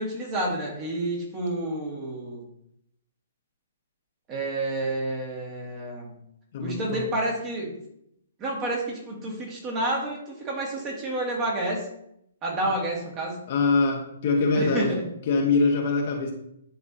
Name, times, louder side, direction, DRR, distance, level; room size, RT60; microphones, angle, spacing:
voice 1, 0.0-2.5 4.3-6.2 6.6-7.7 8.4-11.9 12.4-13.4 14.6-15.0, right 1 dB, 25° right, -2 dB, 1.8 m, -29 dB
voice 2, 6.5-7.0 13.5-15.0 15.3-16.3, left 3 dB, 50° left, 1 dB, 1.2 m, -23 dB
10.0 x 3.5 x 2.7 m, 0.75 s
figure-of-eight pair, 125°, 0 cm